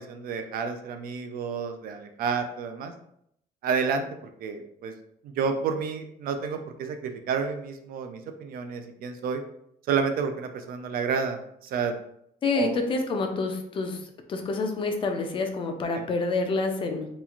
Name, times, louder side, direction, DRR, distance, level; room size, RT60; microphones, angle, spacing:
voice 1, 0.0-2.9 3.6-4.0 4.4-4.9 5.2-9.4 9.9-11.9 12.5-12.8, right 6 dB, 70° right, 7 dB, 0.4 m, -30 dB
voice 2, 12.4-14.0 14.3-17.1, left 3 dB, 35° left, 4 dB, 0.4 m, -27 dB
3.0 x 2.4 x 2.4 m, 0.72 s
cardioid pair, 175°, 16 cm